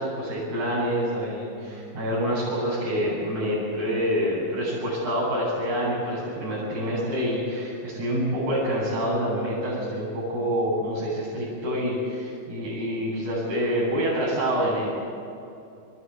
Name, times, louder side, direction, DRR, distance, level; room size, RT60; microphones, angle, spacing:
voice 1, 0.0-14.9, equal, 50° right, -9 dB, 9.3 m, -27 dB
29.5 x 16.0 x 8.4 m, 2.6 s
omnidirectional pair, 4.3 m